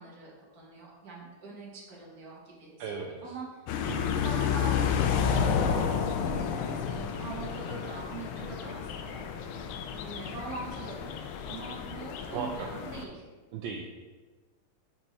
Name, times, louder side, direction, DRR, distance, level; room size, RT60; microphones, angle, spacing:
voice 1, 0.0-3.6 4.0-11.1 11.4-13.2, right 4 dB, 45° right, -4 dB, 1.8 m, -43 dB
voice 2, 2.8-3.3 3.8-4.2 12.3-12.7 13.5-13.9, right 5 dB, 75° right, 2 dB, 1.2 m, -37 dB
sound 1, 3.7-13.0, left 7 dB, 80° left, 1.4 m, -31 dB
5.5 x 4.4 x 4.3 m, 1.3 s
omnidirectional pair, 2.4 m